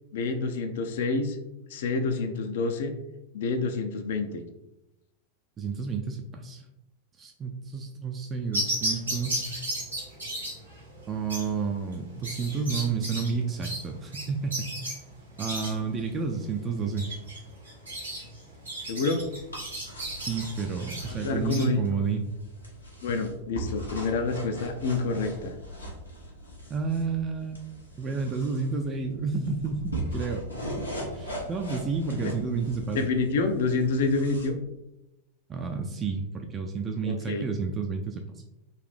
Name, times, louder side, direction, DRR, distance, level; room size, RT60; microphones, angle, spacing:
voice 1, 0.1-1.4 1.7-2.9 3.3-4.4 18.9-19.2 21.1-21.8 23.0-25.5 32.2-32.3 32.9-34.6 37.0-37.4, left 3 dB, 55° left, 8 dB, 0.4 m, -28 dB
voice 2, 5.6-6.6 7.2-9.5 11.1-14.7 15.4-17.1 20.3-22.3 26.7-27.6 28.0-30.5 31.2-33.1 35.5-38.2, right 5 dB, 25° right, 3 dB, 0.4 m, -30 dB
sound 1, 8.5-21.6, right 1 dB, 80° right, 1.4 m, -35 dB
sound 2, 19.0-34.5, right 1 dB, 85° left, 1.0 m, -40 dB
4.0 x 2.7 x 3.1 m, 0.92 s
figure-of-eight pair, 90°, 0 cm